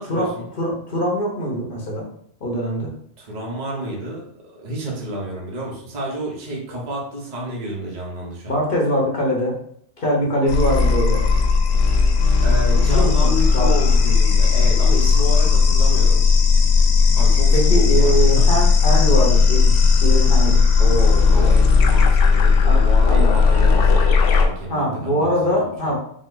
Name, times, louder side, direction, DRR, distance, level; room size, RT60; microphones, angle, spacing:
voice 1, 0.0-0.5 3.2-4.2 4.6-8.6 12.4-16.2 17.1-18.5 20.8-25.5 25.8-25.9, right 1 dB, 40° right, -3 dB, 1.0 m, -30 dB
voice 2, 0.6-2.1 2.4-2.9 8.5-9.5 10.0-11.2 12.9-13.7 15.0-15.1 17.5-20.6 21.3-21.5 22.6-23.3 24.7-26.0, equal, 45° left, -2 dB, 1.1 m, -23 dB
sound 1, 10.5-24.5, left 5 dB, 80° left, 1.0 m, -15 dB
5.4 x 2.1 x 3.8 m, 0.66 s
omnidirectional pair, 1.3 m